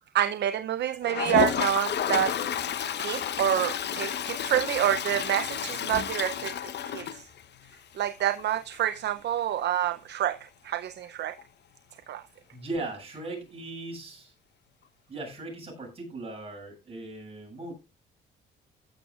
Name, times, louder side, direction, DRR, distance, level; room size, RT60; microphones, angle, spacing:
voice 1, 0.1-2.3 3.0-6.5 6.9-7.3 8.0-11.4 12.1-12.2, right 11 dB, 60° right, 0.6 m, -27 dB
Toilet flush, 1.0-7.7 8.1-8.2 8.4-8.5 8.7-8.8 11.4-11.5 12.8-12.9, left 9 dB, 60° left, 1.0 m, -31 dB
voice 2, 12.5-14.3 15.1-17.7, right 2 dB, 30° right, 7.7 m, -38 dB
15.5 x 10.5 x 2.4 m
cardioid pair, 90°, 20 cm